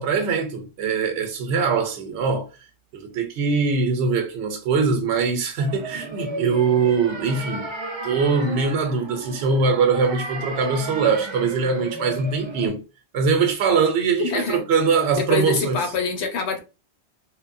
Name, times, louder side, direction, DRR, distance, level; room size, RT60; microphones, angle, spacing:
voice 1, 0.0-2.5 2.9-7.7 8.0-12.8 13.1-15.8, right 5 dB, 80° right, 0.9 m, -22 dB
sound 1, 5.6-12.7, right 2 dB, 45° right, 0.4 m, -34 dB
voice 2, 14.2-14.6 15.2-16.6, left 4 dB, 85° left, 1.0 m, -25 dB
2.9 x 2.1 x 2.5 m
omnidirectional pair, 1.1 m